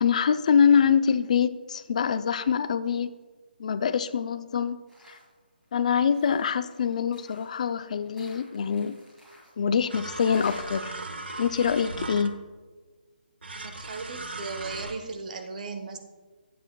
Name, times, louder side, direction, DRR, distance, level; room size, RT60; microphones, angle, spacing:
voice 1, 0.0-3.1 3.6-4.8 5.1-5.2 5.7-9.0 9.6-10.9 11.4-12.3, left 7 dB, 45° left, 12 dB, 0.4 m, -24 dB
sound 1, 4.9-5.3 5.6-10.6, equal, 5° right, 2.1 m, -53 dB
sound 2, 9.9-12.6 13.4-14.9, right 2 dB, 85° right, 1.0 m, -38 dB
voice 2, 13.6-16.0, right 4 dB, 50° right, 6 dB, 1.1 m, -37 dB
12.5 x 8.6 x 2.3 m, 1.4 s
figure-of-eight pair, 160°, 6 cm